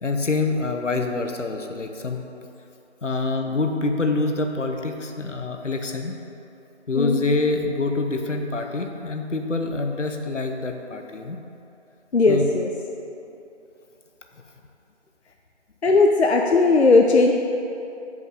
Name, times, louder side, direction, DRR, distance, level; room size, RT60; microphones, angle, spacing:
voice 1, 0.0-2.2 3.0-6.1 6.9-11.4 12.3-12.5, left 3 dB, 85° left, 4 dB, 0.9 m, -26 dB
voice 2, 12.1-12.7 15.8-17.3, left 3 dB, 65° left, 2 dB, 0.5 m, -17 dB
7.8 x 5.4 x 4.8 m, 2.9 s
figure-of-eight pair, 180°, 36 cm